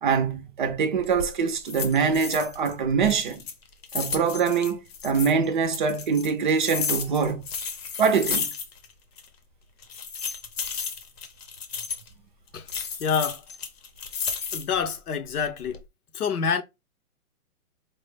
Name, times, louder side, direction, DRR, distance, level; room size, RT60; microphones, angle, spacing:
voice 1, 0.0-3.5 3.9-7.4 8.0-8.5, right 5 dB, 35° right, 0.5 m, -24 dB
sound 1, 1.0-1.3 1.7-2.7 3.0-5.3 5.7-8.9 9.2-9.3 9.8-12.1 12.7-14.8 15.3-15.8, left 6 dB, 45° left, 0.8 m, -33 dB
voice 2, 13.0-13.4 14.5-15.8 16.1-16.6, left 6 dB, 80° left, 0.9 m, -27 dB
4.5 x 2.2 x 3.1 m
hypercardioid pair, 150°, 44 cm